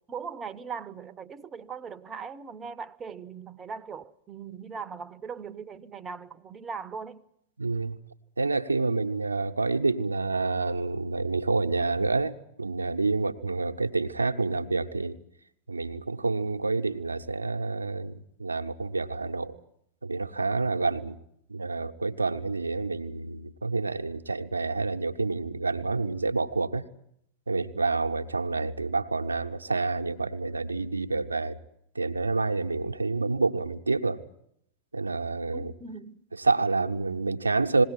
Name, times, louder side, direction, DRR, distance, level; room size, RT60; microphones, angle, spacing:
voice 1, 0.1-7.2 35.5-36.2, right 5 dB, 20° right, 0.8 m, -39 dB
voice 2, 7.6-8.0 8.4-15.2 15.7-19.5 20.0-21.1 21.5-26.8 27.5-31.6 31.9-34.2 34.9-35.7 36.3-37.8, right 3 dB, 80° right, 0.9 m, -28 dB
20.5 x 17.5 x 9.7 m
figure-of-eight pair, 90°, 0 cm